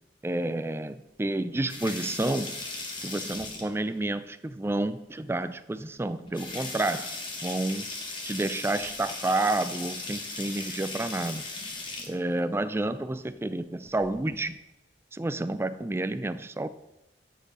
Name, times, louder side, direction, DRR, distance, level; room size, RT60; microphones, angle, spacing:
voice 1, 0.2-2.6 3.0-7.1 7.4-7.9 8.2-11.5 12.1-14.6 15.1-16.7, right 2 dB, 15° right, 12 dB, 0.4 m, -30 dB
sound 1, 1.5-3.9 5.3-5.4 5.8-5.9 6.2-12.1 13.8-14.4, left 3 dB, 25° left, 1.4 m, -38 dB
9.6 x 4.6 x 5.5 m, 0.94 s
head